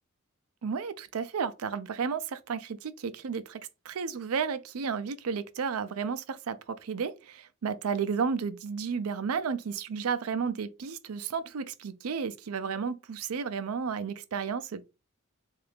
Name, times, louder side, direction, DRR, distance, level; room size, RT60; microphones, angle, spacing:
voice 1, 0.6-14.8, right 6 dB, 85° right, 0.5 m, -32 dB
3.7 x 2.4 x 3.4 m
head